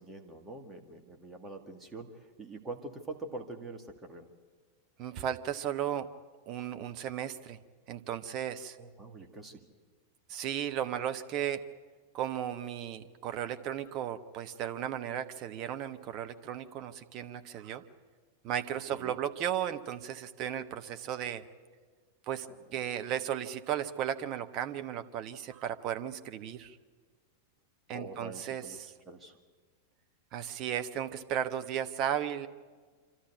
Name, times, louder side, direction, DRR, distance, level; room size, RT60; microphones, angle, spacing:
voice 1, 0.0-4.3 8.8-9.6 18.9-19.2 22.5-22.9 27.9-29.4, right 2 dB, 15° right, 3 dB, 2.1 m, -45 dB
voice 2, 5.0-6.1 6.5-7.6 7.9-8.8 10.3-11.7 12.1-17.8 18.4-21.4 22.3-22.5 22.7-26.8 27.9-28.9 30.3-32.5, right 10 dB, 40° right, 8 dB, 1.1 m, -35 dB
26.0 x 13.0 x 9.4 m, 1.5 s
figure-of-eight pair, 90°, 0 cm